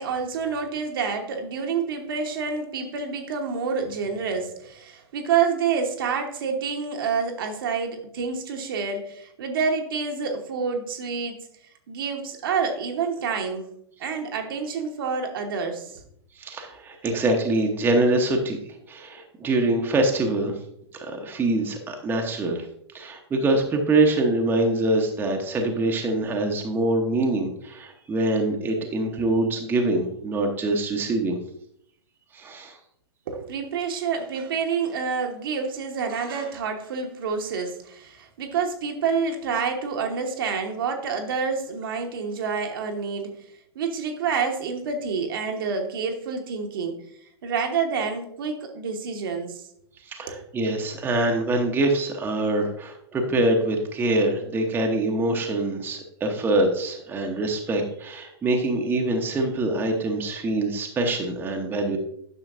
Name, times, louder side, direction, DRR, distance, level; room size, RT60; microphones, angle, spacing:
voice 1, 0.0-11.4 11.9-13.7 14.0-16.0 17.0-17.1 33.3-43.3 43.7-47.0 47.4-49.6 50.3-50.4, right 5 dB, 55° right, 3 dB, 1.2 m, -28 dB
voice 2, 16.4-20.6 20.9-22.6 22.9-31.4 32.3-32.8 50.0-62.0, right 2 dB, 15° right, 2 dB, 1.0 m, -24 dB
9.9 x 6.2 x 2.6 m, 0.71 s
figure-of-eight pair, 105°, 14 cm